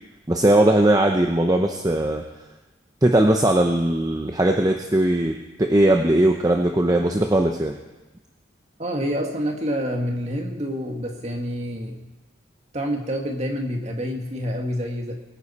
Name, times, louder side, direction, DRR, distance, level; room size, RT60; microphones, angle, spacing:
voice 1, 0.3-2.2 3.0-7.7, right 1 dB, 20° right, 3 dB, 0.7 m, -19 dB
voice 2, 8.8-12.0 12.7-15.2, equal, 35° right, 2 dB, 1.8 m, -27 dB
22.0 x 9.8 x 4.2 m, 1.1 s
head